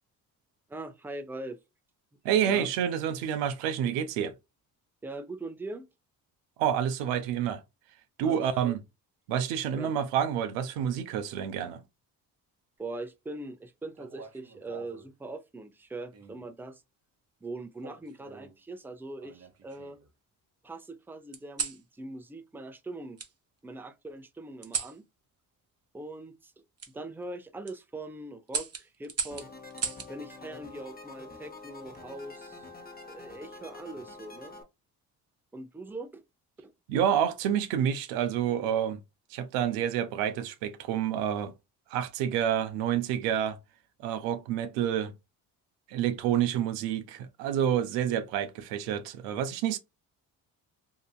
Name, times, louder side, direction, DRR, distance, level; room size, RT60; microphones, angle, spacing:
voice 1, 0.7-1.6 2.4-2.7 5.0-5.9 8.2-8.8 9.7-9.9 12.8-16.8 17.4-20.0 20.6-23.2 23.6-25.0 25.9-26.5 26.9-29.5 30.1-32.7 33.1-34.5 35.5-36.2, right 2 dB, 5° right, 0.5 m, -41 dB
voice 2, 2.2-4.3 6.6-7.6 8.2-8.8 9.3-11.8 36.9-39.0 39.3-41.5 41.9-43.6 44.0-45.1 45.9-49.8, right 9 dB, 90° right, 0.5 m, -28 dB
sound 1, 14.0-15.1 16.1-16.5 17.8-18.6 19.2-20.1 21.3-21.8 23.2-23.3 24.6-25.0 26.8-26.9 27.5-27.7 28.5-30.1 31.6-32.0, right 6 dB, 35° right, 0.8 m, -37 dB
sound 2, 29.3-34.6, left 3 dB, 20° left, 0.9 m, -46 dB
2.8 x 2.5 x 2.2 m
supercardioid pair, 55°, 43 cm